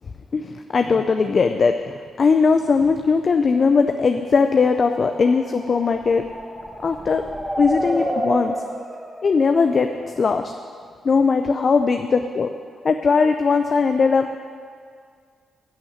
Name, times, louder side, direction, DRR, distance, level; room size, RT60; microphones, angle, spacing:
voice 1, 0.3-6.2 6.8-7.2 7.6-8.6 9.2-9.9 10.2-10.5 11.0-12.5 12.8-14.4, left 5 dB, 50° left, 7 dB, 0.6 m, -19 dB
sound 1, 4.7-10.5, equal, ahead, 1.7 m, -30 dB
11.5 x 6.1 x 9.4 m, 2.1 s
supercardioid pair, 55°, 0 cm